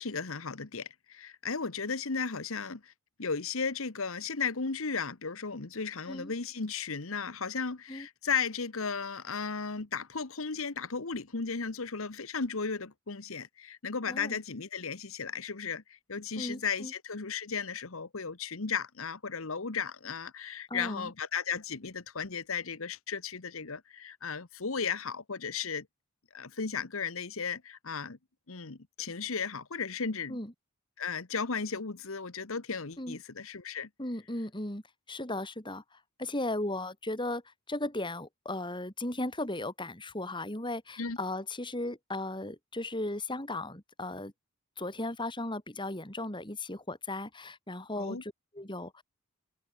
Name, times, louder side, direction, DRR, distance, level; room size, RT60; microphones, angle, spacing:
voice 1, 0.0-2.9 3.2-25.9 26.3-28.2 28.5-30.4 31.0-33.9 41.0-41.2 48.0-48.2, left 5 dB, 65° left, 1.3 m, -35 dB
voice 2, 14.1-14.4 16.4-16.9 20.7-21.1 30.3-30.5 33.0-33.2 34.0-34.8 35.1-44.3 44.8-49.0, left 2 dB, 20° left, 4.0 m, -36 dB
head